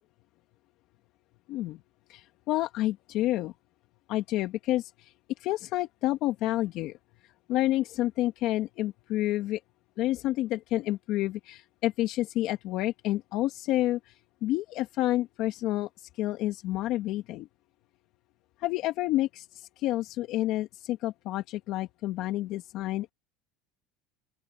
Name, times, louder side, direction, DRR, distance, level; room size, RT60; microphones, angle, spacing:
voice 1, 1.5-1.8 2.1-3.5 4.1-7.0 7.5-9.6 10.0-17.5 18.6-23.1, left 15 dB, 55° left, 1.7 m, -29 dB
open air
supercardioid pair, 125°, 0 cm